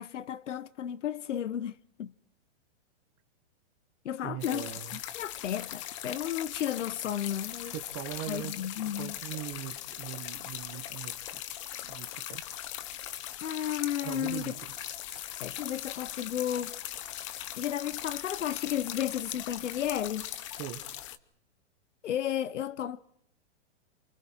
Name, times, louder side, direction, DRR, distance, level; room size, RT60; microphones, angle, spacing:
voice 1, 0.0-2.1 4.0-7.7 8.3-9.2 13.4-14.5 15.4-16.7 17.5-20.3 22.0-23.0, left 10 dB, 90° left, 1.1 m, -33 dB
voice 2, 4.2-5.0 7.6-8.6 9.0-12.4 14.0-15.3 20.6-20.8, right 14 dB, 25° right, 1.3 m, -41 dB
sound 1, 4.4-21.2, left 12 dB, 25° left, 1.0 m, -40 dB
29.0 x 27.5 x 4.5 m
hypercardioid pair, 175°, 35 cm